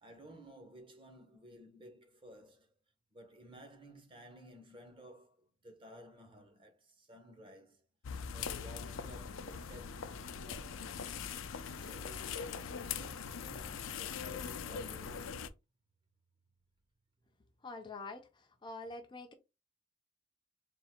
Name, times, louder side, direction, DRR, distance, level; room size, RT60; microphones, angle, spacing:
voice 1, 0.0-2.8 3.1-7.8 8.3-10.1 10.4-11.0 11.6-15.6, equal, 25° right, 0.8 m, -55 dB
sound 1, 8.0-15.5, left 6 dB, 85° left, 0.5 m, -42 dB
voice 2, 17.6-19.3, left 3 dB, 25° left, 0.5 m, -46 dB
3.6 x 2.5 x 4.3 m
head